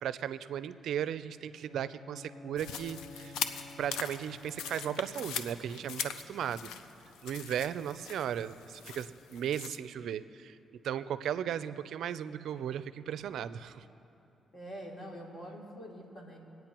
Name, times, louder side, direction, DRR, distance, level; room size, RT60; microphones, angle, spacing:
voice 1, 0.0-3.4 3.8-6.7 7.2-10.6 10.8-13.8, right 9 dB, 80° right, 14 dB, 0.4 m, -36 dB
Bowed string instrument, 1.5-5.3, left 3 dB, 70° left, 2.8 m, -51 dB
sound 1, 2.6-9.8, left 7 dB, 90° left, 0.5 m, -41 dB
voice 2, 7.8-8.1 14.5-16.4, equal, 50° left, -2 dB, 2.8 m, -46 dB
25.0 x 9.2 x 3.0 m, 2.9 s
supercardioid pair, 65°, 0 cm